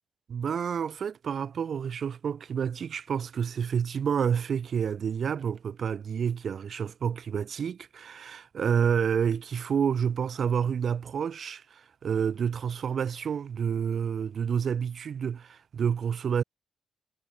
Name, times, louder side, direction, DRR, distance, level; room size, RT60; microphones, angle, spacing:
voice 1, 0.3-16.4, right 7 dB, 50° right, 0.7 m, -29 dB
wide cardioid pair, 150°, 0 cm